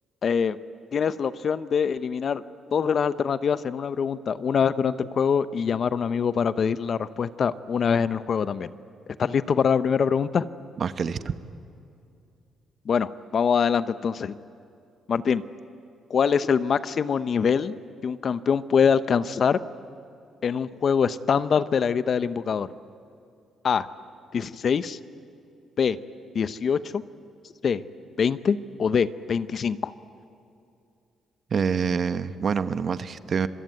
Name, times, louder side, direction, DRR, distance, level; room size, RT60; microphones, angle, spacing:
voice 1, 0.2-0.6 0.9-2.4 2.7-8.7 9.2-10.5 12.9-14.4 15.1-15.4 16.1-17.7 18.0-19.6 20.4-22.7 23.6-23.9 24.3-25.0 25.8-26.0 26.3-27.0 27.6-27.8 28.2-29.9, left 6 dB, 50° left, 14 dB, 0.8 m, -24 dB
voice 2, 10.8-11.2 31.5-33.5, right 6 dB, 50° right, 12 dB, 1.0 m, -26 dB
26.5 x 22.0 x 9.4 m, 2.5 s
cardioid pair, 90°, 0 cm